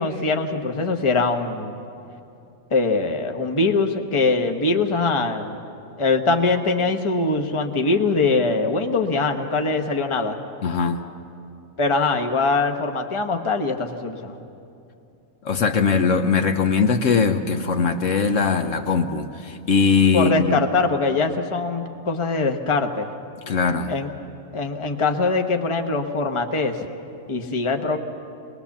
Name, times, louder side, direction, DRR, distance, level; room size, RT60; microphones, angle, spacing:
voice 1, 0.0-1.8 2.7-5.6 6.0-10.4 11.8-14.3 20.1-23.1 23.9-24.1 24.5-26.8 27.3-28.0, left 3 dB, 25° left, 5 dB, 1.0 m, -22 dB
voice 2, 10.6-11.0 15.4-20.6 23.5-23.9, left 5 dB, 65° left, 6 dB, 1.2 m, -20 dB
23.0 x 20.0 x 7.2 m, 2.7 s
omnidirectional pair, 1.5 m